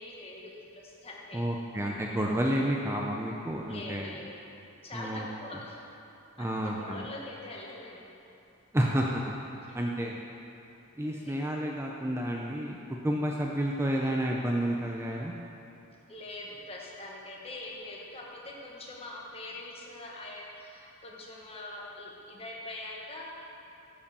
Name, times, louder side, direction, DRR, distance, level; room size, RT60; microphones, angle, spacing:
voice 1, 0.0-1.4 3.6-4.4 4.8-5.8 6.4-8.0 9.6-9.8 11.0-11.3 16.1-23.3, left 2 dB, 30° left, -3 dB, 1.3 m, -43 dB
voice 2, 1.3-4.2 4.9-5.3 6.4-7.0 8.7-9.3 9.7-10.2 11.0-12.8 13.0-15.3, equal, 10° right, -1 dB, 0.5 m, -30 dB
10.5 x 5.0 x 6.8 m, 2.9 s
head